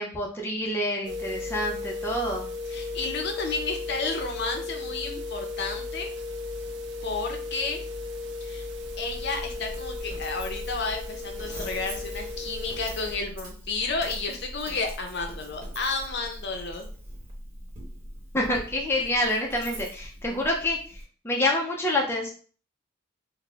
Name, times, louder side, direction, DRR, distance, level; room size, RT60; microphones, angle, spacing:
voice 1, 0.0-2.4 18.3-20.8 21.2-22.3, left 1 dB, 10° left, -2 dB, 0.4 m, -27 dB
sound 1, 1.0-13.2, left 3 dB, 60° right, 0.4 m, -35 dB
voice 2, 2.7-6.1 7.0-7.8 8.4-8.7 9.0-16.9, left 3 dB, 60° left, 4 dB, 0.6 m, -32 dB
Coin (dropping), 8.7-21.0, equal, 35° right, 1.0 m, -42 dB
4.0 x 2.0 x 2.3 m, 0.42 s
head